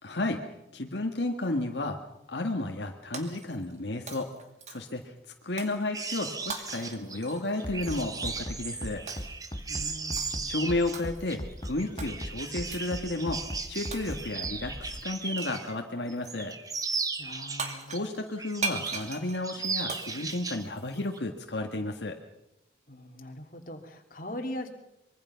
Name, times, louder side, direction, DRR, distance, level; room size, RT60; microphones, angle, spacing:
voice 1, 0.0-0.4 0.7-2.0 2.3-4.3 4.7-5.1 5.4-9.0 10.4-13.4 13.7-16.5 17.9-22.2, left 2 dB, 80° left, 3 dB, 1.7 m, -32 dB
Shatter, 3.1-3.8 4.1-5.0 5.6-5.8 6.5-8.1 9.1-9.4 10.2-10.5 10.9-11.4 12.0-12.1 12.7-13.0 13.9-14.4 15.4-15.7 17.3-17.4 17.6-21.2, right 4 dB, 40° right, 2.4 m, -39 dB
sound 1, 5.9-15.8 16.1-18.0 18.4-19.1 19.4-20.7 21.0-21.2, right 4 dB, 20° right, 1.3 m, -37 dB
Bass drum, 7.6-15.0, equal, 25° left, 1.3 m, -38 dB
voice 2, 9.7-10.5 17.2-17.9 22.9-24.7, left 1 dB, 50° left, 3 dB, 2.8 m, -40 dB
24.5 x 22.5 x 5.8 m, 0.87 s
head